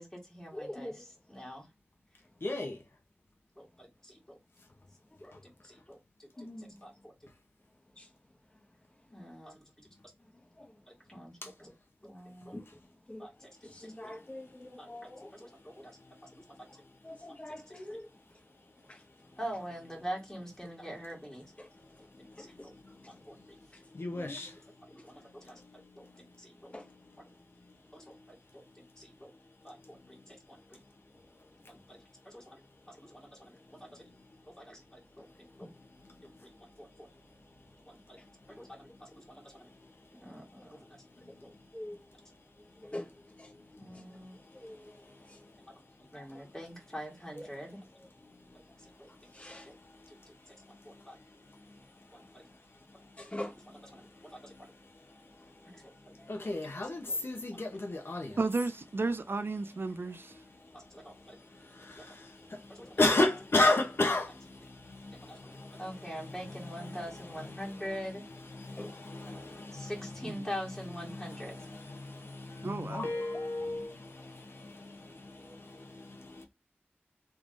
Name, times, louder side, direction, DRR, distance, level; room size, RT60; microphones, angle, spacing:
voice 1, 0.0-1.7 3.6-4.4 5.2-7.3 9.1-9.9 10.9-11.7 12.0-12.6 13.2-14.1 14.8-16.0 16.3-16.6 17.5-18.0 19.4-21.5 22.4-22.7 23.3-23.4 24.2-24.4 24.9-26.1 26.4-26.7 27.9-29.3 29.6-30.8 31.7-32.0 32.2-32.6 32.9-33.8 34.5-35.3 35.6-35.7 36.2-36.5 36.8-37.1 37.9-38.2 38.5-39.7 40.2-41.0 41.4-41.5 43.8-44.4 46.0-47.8 49.0-49.1 49.4-49.7 50.5-50.6 50.8-51.2 52.1-52.4 53.7-54.4 55.7-56.1 56.4-56.5 57.1-57.2 60.7-61.4 62.0-62.1 62.7-63.0 65.2-68.2 69.0-69.4 69.7-71.5, equal, 10° left, 1.8 m, -45 dB
voice 2, 0.5-1.1 5.2-5.4 6.4-6.8 8.0-8.1 10.6-10.7 12.5-12.6 13.1-13.3 13.6-15.3 17.0-18.1 18.9-19.0 21.6-21.7 22.3-22.7 24.1-24.4 26.7-26.9 35.6-35.7 41.7-42.0 42.8-43.1 43.4-43.5 43.9-44.0 44.6-45.0 45.3-45.4 47.3-47.5 49.3-49.7 53.2-53.6 56.2-56.5 68.8-68.9 73.1-73.8 75.4-75.6, left 1 dB, 30° left, 1.2 m, -44 dB
voice 3, 2.4-2.8 11.4-11.5 16.2-16.3 22.0-23.5 23.9-24.6 25.3-26.1 26.8-26.9 30.0-30.1 33.8-34.1 35.6-36.2 38.9-39.0 41.2-41.4 43.7-44.1 44.6-45.6 46.4-46.5 48.2-48.6 49.3-50.2 50.7-51.8 52.1-52.4 53.9-55.8 56.1-58.4 60.4-67.8 68.5-70.1 71.1-76.5, left 2 dB, 65° left, 0.8 m, -36 dB
voice 4, 58.4-60.4 70.2-70.4 72.6-73.1, right 3 dB, 60° right, 0.4 m, -33 dB
3.5 x 3.2 x 2.6 m
wide cardioid pair, 60°, 4 cm